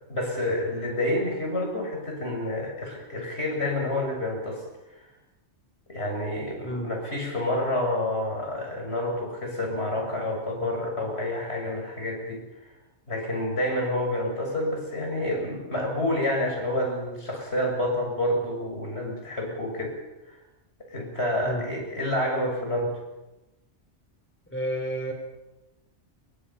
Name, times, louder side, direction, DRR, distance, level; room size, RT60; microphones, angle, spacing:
voice 1, 0.1-4.6 5.9-12.4 13.1-20.0 20.3-20.4 20.9-22.9, left 1 dB, 65° left, 1 dB, 7.2 m, -28 dB
voice 2, 24.5-25.1, right 1 dB, 10° left, 3 dB, 3.9 m, -30 dB
29.0 x 23.5 x 5.8 m, 1.0 s
omnidirectional pair, 1.2 m